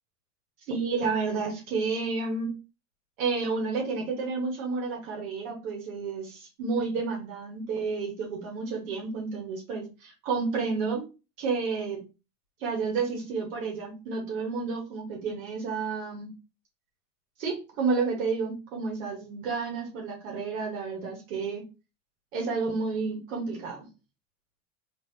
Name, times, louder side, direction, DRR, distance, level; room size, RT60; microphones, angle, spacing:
voice 1, 0.7-2.5 3.2-11.1 11.4-12.0 12.6-16.3 17.4-21.6 22.3-23.9, right 4 dB, 80° right, 0 dB, 1.3 m, -30 dB
3.4 x 2.8 x 2.7 m, 0.29 s
hypercardioid pair, 85°, 40 cm